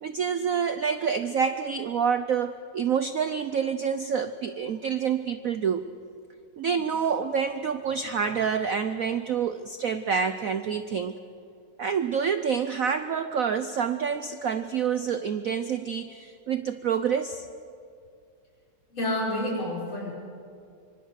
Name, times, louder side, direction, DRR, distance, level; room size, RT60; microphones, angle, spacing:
voice 1, 0.0-5.8 6.6-11.2 11.8-17.5, right 7 dB, 85° right, 10 dB, 0.7 m, -27 dB
voice 2, 18.9-20.1, left 1 dB, 60° left, -3 dB, 6.1 m, -29 dB
25.0 x 25.0 x 6.5 m, 2.4 s
omnidirectional pair, 2.4 m